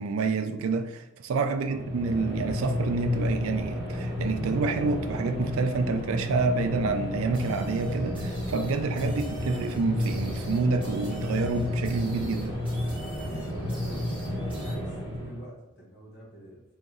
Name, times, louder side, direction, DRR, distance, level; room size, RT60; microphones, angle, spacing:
voice 1, 0.0-12.6, right 4 dB, 75° right, 0.4 m, -28 dB
sound 1, 1.6-15.5, left 1 dB, 20° left, 1.1 m, -32 dB
sound 2, 7.3-14.7, right 1 dB, 5° right, 1.3 m, -49 dB
voice 2, 13.1-16.6, right 1 dB, 50° left, 1.4 m, -46 dB
2.9 x 2.6 x 3.8 m
head